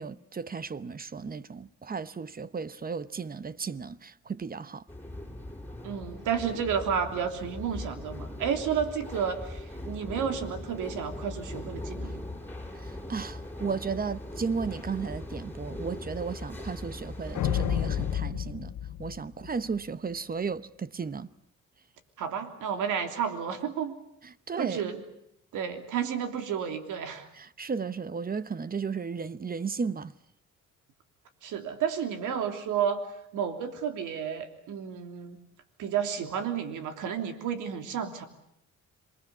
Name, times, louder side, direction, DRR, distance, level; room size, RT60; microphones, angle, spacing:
voice 1, 0.0-4.8 12.7-18.7 19.0-21.3 24.2-24.9 27.3-30.1, right 5 dB, 30° right, 1.0 m, -34 dB
sound 1, 4.9-18.2, left 1 dB, 5° left, 5.2 m, -40 dB
voice 2, 5.8-12.2 22.2-23.9 24.6-25.0 25.5-27.3 31.4-33.0 33.3-35.4 35.8-38.2, right 7 dB, 85° right, 3.2 m, -31 dB
sound 2, 17.3-19.8, left 10 dB, 75° left, 1.6 m, -30 dB
27.5 x 21.0 x 8.3 m
cardioid pair, 90°, 30 cm